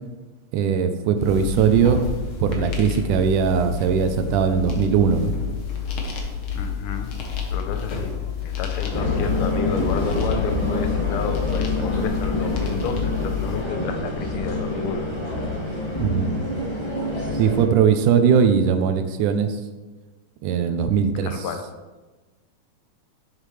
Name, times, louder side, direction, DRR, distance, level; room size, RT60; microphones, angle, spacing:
voice 1, 0.5-2.0 2.4-5.3 16.0-16.4 17.4-19.6 20.4-21.3, right 7 dB, 85° right, 8 dB, 2.2 m, -20 dB
sound 1, 1.2-13.6, left 8 dB, 55° left, 1.7 m, -29 dB
voice 2, 6.5-7.1 7.5-8.2 8.4-15.1 15.3-15.7 21.2-21.6, left 5 dB, 70° left, 6 dB, 1.4 m, -31 dB
sound 2, 8.9-17.7, left 2 dB, 40° left, 0.4 m, -26 dB
11.0 x 7.5 x 3.4 m, 1.2 s
omnidirectional pair, 3.5 m